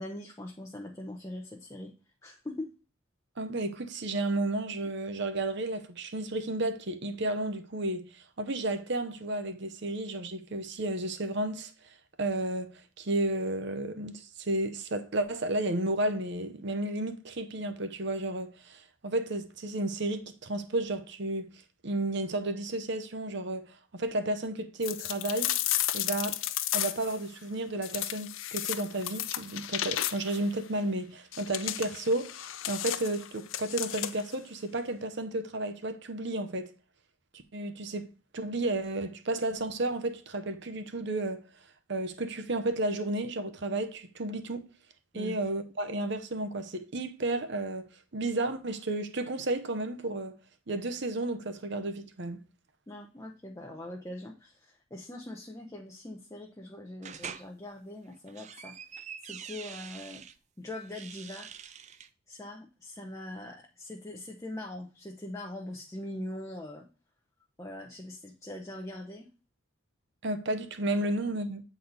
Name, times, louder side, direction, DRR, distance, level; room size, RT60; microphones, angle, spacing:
voice 1, 0.0-1.9 2.2-2.7 45.1-45.4 52.9-58.7 59.2-60.2 60.6-61.5 62.3-66.8 67.6-69.3 70.9-71.0, left 1 dB, 15° left, 0.6 m, -42 dB
voice 2, 3.4-11.7 12.2-12.7 13.0-21.5 21.8-25.5 25.9-26.3 26.7-36.7 37.5-38.1 38.3-41.4 41.9-44.6 45.1-47.9 48.1-50.4 50.7-52.4 70.2-71.6, right 2 dB, 55° right, 0.8 m, -32 dB
sound 1, 24.8-27.2 27.8-30.4 31.3-34.3, left 13 dB, 65° left, 0.5 m, -33 dB
sound 2, 57.0-57.5 58.1-60.3 60.8-62.1, right 7 dB, 35° right, 0.4 m, -44 dB
8.2 x 4.1 x 4.0 m
head